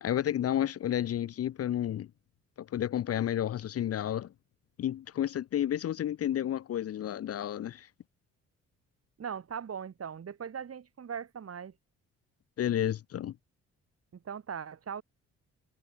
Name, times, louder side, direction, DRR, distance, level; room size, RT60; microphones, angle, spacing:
voice 1, 0.0-2.1 2.6-4.3 4.8-7.9 12.6-13.4, left 11 dB, 50° left, 0.7 m, -31 dB
voice 2, 9.2-11.7 14.1-15.0, right 7 dB, 50° right, 6.1 m, -39 dB
supercardioid pair, 70°, 31 cm